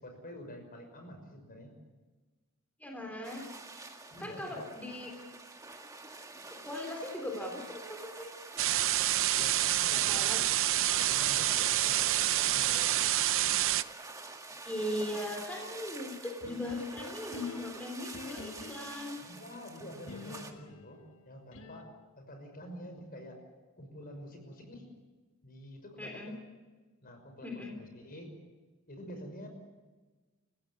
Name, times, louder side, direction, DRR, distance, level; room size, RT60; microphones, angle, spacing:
voice 1, 0.0-1.8 4.1-4.7 9.4-10.5 10.8-13.1 19.2-21.9 22.2-23.4 23.8-24.9 25.4-26.4 27.0-28.3 28.9-29.5, equal, 45° left, 5 dB, 5.8 m, -48 dB
voice 2, 2.8-3.5 4.2-5.1 6.5-8.3 9.9-10.4 14.6-19.2 26.0-26.3 27.4-27.8, left 1 dB, 5° left, 1 dB, 3.4 m, -39 dB
sound 1, 3.2-20.5, right 3 dB, 15° right, 2.0 m, -47 dB
sound 2, 8.6-13.8, right 13 dB, 65° right, 0.7 m, -28 dB
sound 3, 16.4-19.2 20.1-22.0, left 3 dB, 65° left, 1.6 m, -48 dB
29.5 x 16.0 x 8.5 m, 1.3 s
head